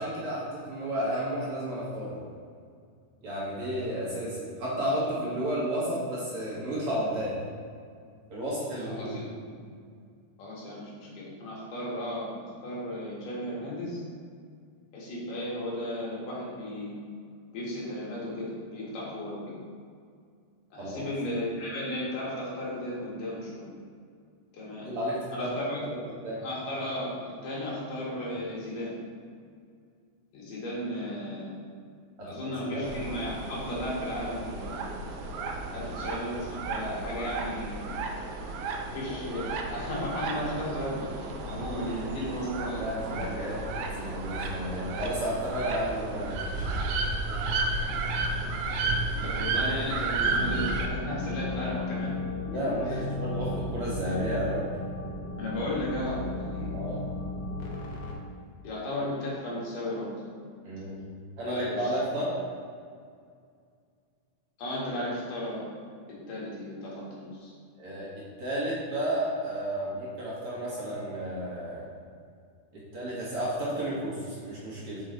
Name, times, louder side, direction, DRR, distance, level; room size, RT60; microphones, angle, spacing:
voice 1, 0.0-2.2 3.2-7.3 8.3-9.2 20.8-21.1 24.8-26.4 32.2-32.9 35.7-35.9 41.5-41.6 42.7-43.6 43.9-46.6 52.4-54.7 56.7-57.0 60.6-61.0 61.4-62.4 67.8-71.9 72.7-75.0, equal, 50° right, -7 dB, 2.4 m, -32 dB
voice 2, 8.9-9.3 9.5-9.7 10.4-12.3 12.6-14.0 14.9-16.9 17.5-19.5 20.7-23.6 24.5-24.9 25.3-25.8 26.4-29.0 30.3-31.6 32.2-34.8 35.7-37.9 38.9-41.1 41.5-42.8 49.1-52.1 52.5-52.6 52.9-53.0 55.4-56.8 58.6-60.1 61.5-61.9 64.6-65.7 66.3-67.5, left 1 dB, 85° left, -6 dB, 3.5 m, -35 dB
sound 1, 32.8-50.9, right 3 dB, 75° right, 2.0 m, -32 dB
sound 2, 50.2-58.1, left 2 dB, 65° left, 1.7 m, -35 dB
6.3 x 6.1 x 3.9 m, 2.2 s
omnidirectional pair, 3.6 m